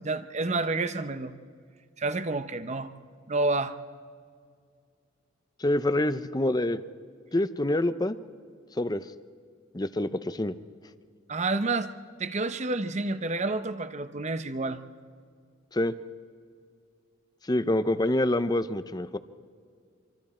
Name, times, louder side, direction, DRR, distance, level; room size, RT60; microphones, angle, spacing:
voice 1, 0.0-1.3 2.0-2.9 3.3-3.8 11.3-11.9 12.2-14.8, right 3 dB, 35° right, 11 dB, 0.9 m, -29 dB
voice 2, 5.6-6.8 7.3-8.2 8.8-9.0 9.7-10.5 15.7-15.9 17.5-19.2, left 1 dB, 20° left, 13 dB, 0.6 m, -26 dB
26.0 x 25.0 x 4.4 m, 2.1 s
head